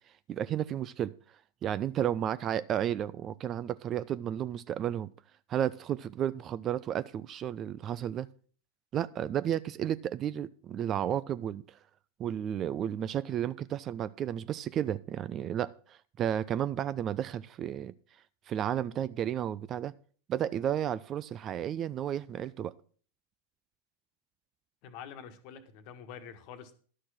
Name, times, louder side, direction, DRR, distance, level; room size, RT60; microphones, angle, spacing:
voice 1, 0.3-1.1 1.6-5.1 5.5-8.3 8.9-11.8 12.2-17.9 18.5-19.9 20.3-22.7, right 10 dB, 30° right, 0.4 m, -32 dB
voice 2, 24.8-26.7, left 7 dB, 45° left, 1.4 m, -46 dB
12.0 x 6.5 x 5.7 m
figure-of-eight pair, 90°, 0 cm